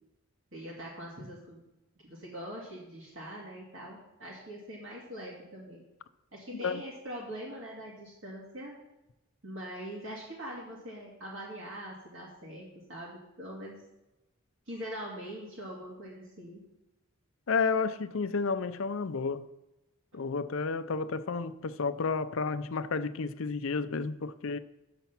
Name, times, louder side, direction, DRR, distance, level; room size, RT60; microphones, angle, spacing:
voice 1, 0.5-1.6 2.0-5.8 6.3-8.7 9.4-13.8 14.7-16.6, equal, 65° right, 2.3 m, -43 dB
voice 2, 17.5-19.5 20.1-24.6, left 4 dB, 70° left, 0.5 m, -31 dB
10.5 x 6.8 x 5.9 m
head